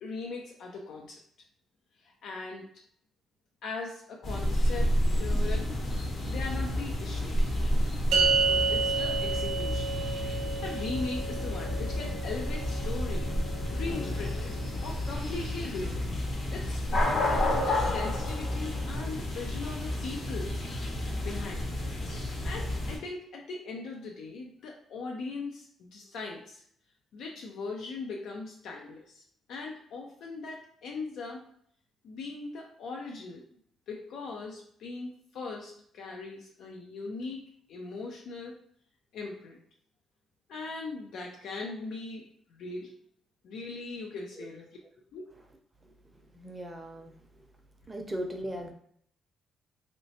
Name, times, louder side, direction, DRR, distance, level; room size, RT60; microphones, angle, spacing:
voice 1, 0.0-1.2 2.0-2.7 3.6-5.7 6.3-7.6 8.1-9.9 10.6-13.3 13.7-14.5 14.8-16.1 16.5-20.6 21.2-21.7 22.4-26.6 27.1-31.4 32.0-33.4 33.9-38.6 39.1-39.6 40.5-42.9 43.4-44.7 45.1-45.2, left 3 dB, 75° left, 0 dB, 0.5 m, -39 dB
sound 1, 4.2-23.0, left 1 dB, 55° left, 0.9 m, -30 dB
sound 2, 8.1-14.7, right 4 dB, 85° right, 0.5 m, -31 dB
voice 2, 46.3-47.2 47.9-48.7, right 1 dB, 20° right, 3 dB, 0.6 m, -38 dB
3.1 x 2.9 x 2.7 m, 0.65 s
cardioid pair, 90°, 0 cm